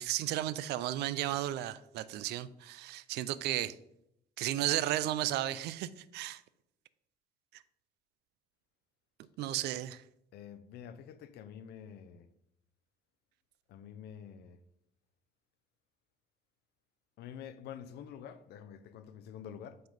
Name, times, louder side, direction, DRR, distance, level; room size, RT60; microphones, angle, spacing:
voice 1, 0.0-3.8 4.4-6.4 7.5-7.6 9.4-10.0, right 13 dB, 75° right, 0.4 m, -34 dB
voice 2, 10.3-12.3 13.7-14.6 17.2-19.8, left 8 dB, 75° left, 0.6 m, -48 dB
7.7 x 4.0 x 5.1 m
cardioid pair, 110°, 17 cm